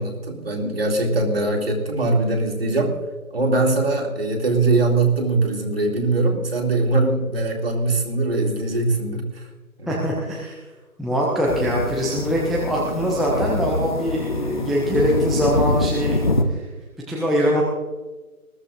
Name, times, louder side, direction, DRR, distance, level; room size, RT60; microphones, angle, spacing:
voice 1, 0.0-3.0 3.3-9.4 9.8-10.1, right 2 dB, 40° right, 2 dB, 2.4 m, -21 dB
voice 2, 9.9-10.6 11.0-16.2 17.1-17.6, equal, ahead, -4 dB, 0.6 m, -22 dB
sound 1, 11.5-16.4, left 2 dB, 30° left, 1.0 m, -25 dB
20.5 x 14.0 x 2.5 m, 1.2 s
figure-of-eight pair, 155°, 44 cm